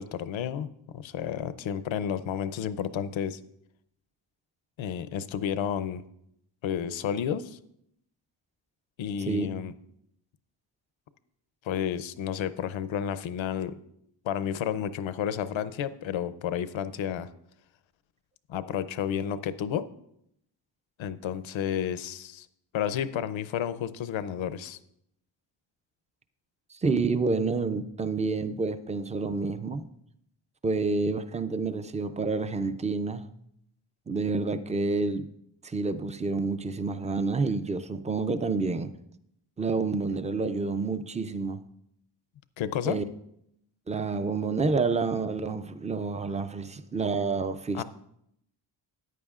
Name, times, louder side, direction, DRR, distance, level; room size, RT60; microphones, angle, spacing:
voice 1, 0.0-3.4 4.8-6.0 6.6-7.6 9.0-9.7 11.6-13.8 14.2-17.3 18.5-19.9 21.0-22.5 22.7-24.8 42.6-43.0 47.7-47.8, left 9 dB, 85° left, 0.6 m, -31 dB
voice 2, 26.7-29.9 30.6-33.3 34.1-35.3 35.6-38.9 39.6-41.6 42.9-43.0 43.9-47.8, right 4 dB, 15° right, 0.3 m, -28 dB
14.0 x 9.5 x 2.4 m
wide cardioid pair, 135°, 46 cm